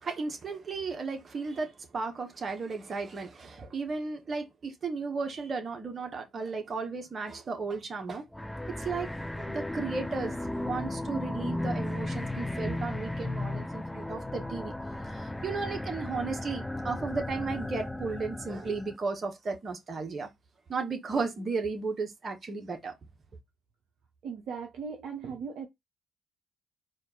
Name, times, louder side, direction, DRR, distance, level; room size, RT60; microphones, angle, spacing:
voice 1, 0.0-8.2 8.8-10.4 10.6-14.7 15.1-20.3 20.7-22.9, right 4 dB, 40° right, 1.3 m, -34 dB
sound 1, 8.3-19.0, left 1 dB, 10° left, 0.4 m, -35 dB
voice 2, 24.2-25.7, right 6 dB, 60° right, 0.8 m, -38 dB
4.3 x 2.6 x 3.8 m
hypercardioid pair, 45°, 0 cm